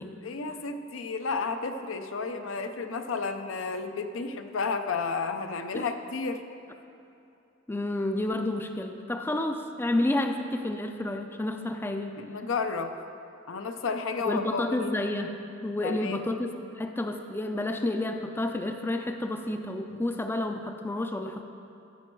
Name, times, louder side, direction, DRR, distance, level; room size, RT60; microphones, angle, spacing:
voice 1, 0.2-6.4 12.2-12.9 13.5-15.0 15.8-16.3, left 4 dB, 80° left, 7 dB, 0.6 m, -32 dB
voice 2, 7.7-12.2 14.2-15.3 15.6-21.4, left 1 dB, 10° left, 6 dB, 0.4 m, -30 dB
14.5 x 5.3 x 4.6 m, 2.7 s
head